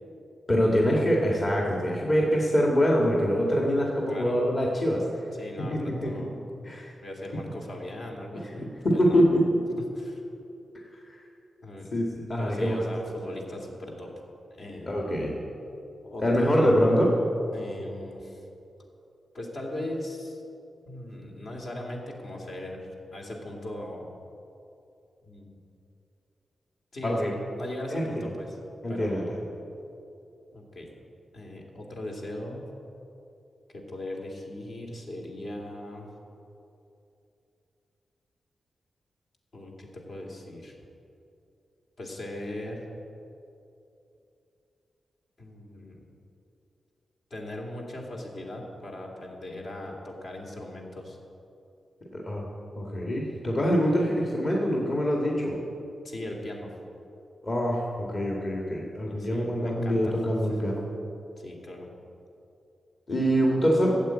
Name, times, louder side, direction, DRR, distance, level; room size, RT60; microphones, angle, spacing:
voice 1, 0.5-5.0 5.6-6.3 6.7-6.9 8.3-9.2 11.9-12.9 14.9-15.4 16.2-17.1 27.0-27.3 27.9-28.3 28.8-29.4 52.1-52.5 52.8-55.6 57.4-60.8 63.1-64.0, equal, 35° left, -2 dB, 1.8 m, -25 dB
voice 2, 5.4-6.3 7.0-9.2 10.0-10.2 11.6-11.9 12.4-14.1 14.5-15.1 16.0-16.5 17.5-18.4 19.3-20.4 20.9-24.1 25.3-25.6 26.9-28.6 28.9-29.3 30.5-30.9 31.3-32.7 33.7-36.1 39.5-40.8 42.0-42.9 45.4-46.1 47.3-51.2 56.0-56.7 59.1-60.1 60.5-60.7 61.4-61.9 63.1-63.4, left 1 dB, 55° left, 0 dB, 2.5 m, -39 dB
14.5 x 7.8 x 8.7 m, 2.8 s
wide cardioid pair, 130°, 0 cm